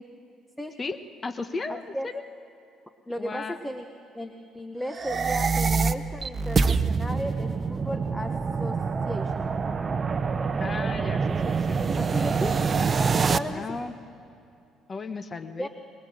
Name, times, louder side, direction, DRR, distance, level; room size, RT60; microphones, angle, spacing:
voice 1, 0.8-2.2 3.2-3.6 10.6-11.9 13.5-13.9 14.9-15.7, left 4 dB, 30° left, 9 dB, 1.4 m, -35 dB
voice 2, 1.7-2.1 3.1-3.9 4.1-8.8 9.0-9.5 12.0-12.6 13.3-13.8 15.6-15.7, equal, 5° left, 6 dB, 1.3 m, -35 dB
sound 1, 4.9-13.4, right 5 dB, 35° right, 0.8 m, -25 dB
24.0 x 21.0 x 8.0 m, 2.6 s
cardioid pair, 90°, 0 cm